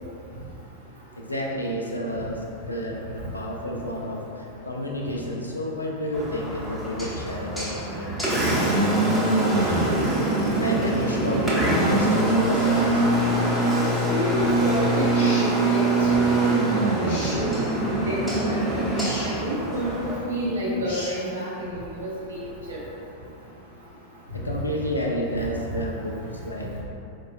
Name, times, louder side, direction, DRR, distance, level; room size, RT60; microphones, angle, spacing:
voice 1, 1.2-8.7 9.3-10.1 10.6-13.1 15.9-16.0 24.3-26.8, equal, 80° left, -1 dB, 0.4 m, -31 dB
Engine, 6.1-20.2, right 2 dB, ahead, 0.8 m, -23 dB
voice 2, 14.0-16.5 16.8-17.4 18.1-18.8 19.2-22.4 22.7-22.8, equal, 75° right, -8 dB, 0.7 m, -29 dB
sound 1, 15.1-15.5 17.1-17.4 18.9-19.3 20.8-21.1, left 1 dB, 60° left, 0.7 m, -35 dB
4.6 x 2.2 x 2.3 m, 2.6 s
figure-of-eight pair, 90°, 0 cm